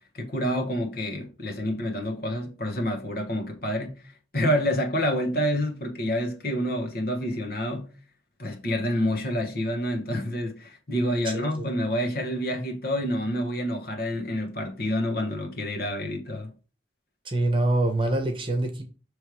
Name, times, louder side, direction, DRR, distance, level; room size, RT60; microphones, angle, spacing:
voice 1, 0.1-7.9 8.4-16.5, equal, 50° left, 1.2 m, -28 dB
voice 2, 11.2-11.6 17.2-18.8, right 2 dB, 25° right, 1.0 m, -25 dB
6.3 x 3.3 x 4.7 m
head